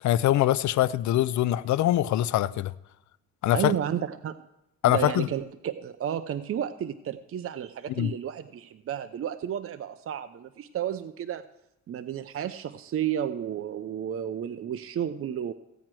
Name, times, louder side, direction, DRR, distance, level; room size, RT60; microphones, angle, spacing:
voice 1, 0.0-2.7 3.4-3.7 4.8-5.3 8.0-8.1, left 13 dB, 70° left, 0.6 m, -23 dB
voice 2, 3.5-4.4 4.8-11.4 11.9-15.5, right 10 dB, 50° right, 0.6 m, -32 dB
16.5 x 8.9 x 4.6 m
cardioid pair, 90°, 30 cm